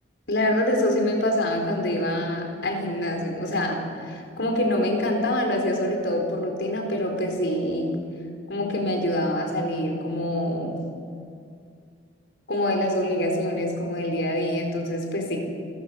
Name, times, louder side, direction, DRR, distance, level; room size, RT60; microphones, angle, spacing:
voice 1, 0.3-7.9 8.5-10.8 12.5-15.4, left 1 dB, 85° left, 3 dB, 4.4 m, -25 dB
29.0 x 15.5 x 7.0 m, 2.3 s
head